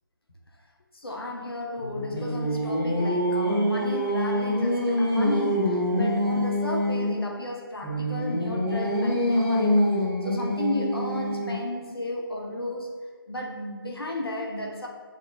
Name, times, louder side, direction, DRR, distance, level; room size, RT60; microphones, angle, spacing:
voice 1, 0.9-9.8 10.2-13.0 13.3-14.9, left 1 dB, 80° left, 1 dB, 0.9 m, -33 dB
Singing, 1.8-7.2 7.8-11.7, equal, 5° left, 1.1 m, -25 dB
6.8 x 3.1 x 2.5 m, 1.5 s
figure-of-eight pair, 160°, 12 cm